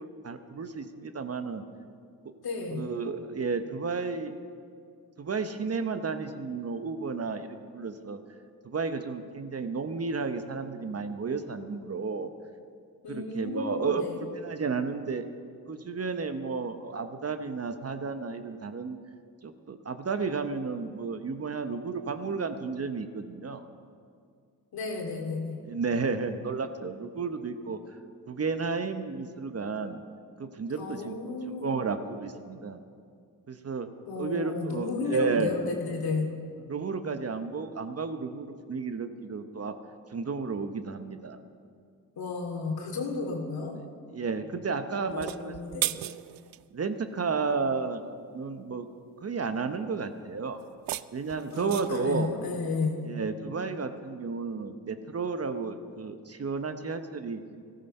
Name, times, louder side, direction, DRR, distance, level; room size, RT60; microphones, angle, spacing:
voice 1, 0.2-1.6 2.7-4.4 5.2-8.2 8.6-12.3 13.1-14.0 14.4-15.2 15.7-19.0 19.4-23.6 25.6-28.0 28.3-30.0 30.4-32.8 33.5-33.9 34.2-35.5 36.7-39.7 40.1-41.4 43.7-43.8 44.1-45.9 46.7-48.9 49.2-50.6 51.1-52.3 53.0-57.4, right 4 dB, 35° right, 9 dB, 1.1 m, -32 dB
voice 2, 2.4-2.8 13.0-14.2 24.7-25.6 30.8-31.8 34.1-36.3 42.2-43.8 45.1-45.9 51.5-53.0, left 3 dB, 65° left, 2 dB, 2.8 m, -33 dB
sound 1, 45.1-46.6 50.6-52.1, right 15 dB, 60° right, 0.5 m, -35 dB
14.0 x 13.5 x 5.5 m, 2.2 s
hypercardioid pair, 50°, 40 cm